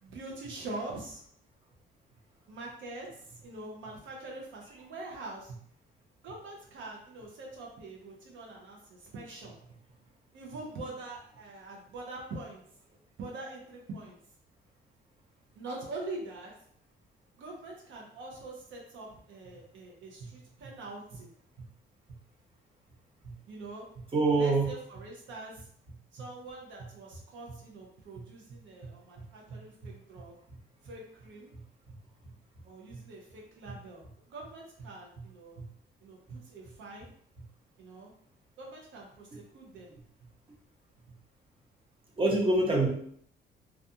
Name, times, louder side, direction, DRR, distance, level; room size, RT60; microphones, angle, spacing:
voice 1, 0.0-1.2 2.5-5.5 6.2-9.6 10.3-12.6 13.2-14.2 15.5-16.5 17.4-21.3 23.5-23.9 24.3-25.7 26.1-30.4 30.8-31.5 32.6-35.6 36.0-37.1 37.8-38.1 38.6-39.9, right 2 dB, 75° right, -1 dB, 0.6 m, -44 dB
voice 2, 24.1-24.7 28.8-28.9 29.2-29.9 30.5-30.6 32.2-32.3 32.9-33.0 33.7-33.8 35.6-35.7 36.3-36.4 42.2-42.9, right 2 dB, 25° right, -3 dB, 0.8 m, -28 dB
2.4 x 2.3 x 2.7 m, 0.64 s
cardioid pair, 90°, 20 cm